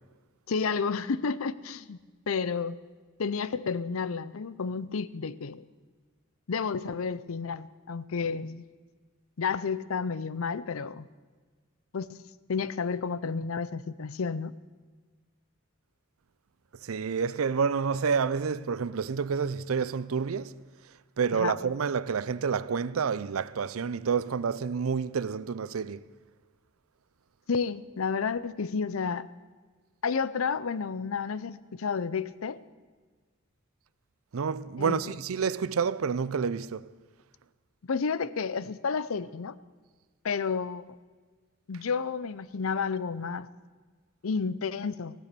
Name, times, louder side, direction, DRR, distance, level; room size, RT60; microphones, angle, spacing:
voice 1, 0.5-2.0 2.3-2.7 3.2-5.6 6.5-8.6 9.4-11.1 11.9-14.5 21.3-21.6 27.5-29.3 30.0-32.6 34.8-35.1 37.8-39.6 40.2-40.8 41.7-43.5 44.2-45.1, left 5 dB, 85° left, 0.6 m, -31 dB
voice 2, 16.9-20.5 21.2-26.0 34.3-36.9, right 6 dB, 90° right, 0.5 m, -29 dB
15.5 x 12.0 x 6.8 m
head